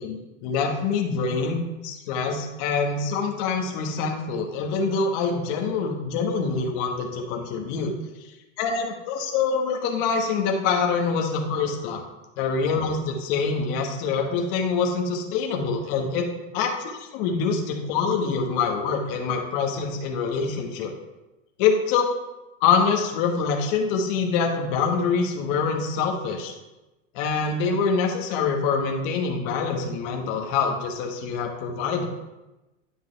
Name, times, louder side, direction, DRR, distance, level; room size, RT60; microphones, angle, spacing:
voice 1, 0.0-7.9 8.6-12.0 12.4-16.3 16.5-20.9 21.6-22.1 22.6-26.5 27.1-32.0, left 5 dB, 45° left, 2 dB, 1.3 m, -25 dB
10.0 x 5.1 x 3.3 m, 1.0 s
hypercardioid pair, 130°, 38 cm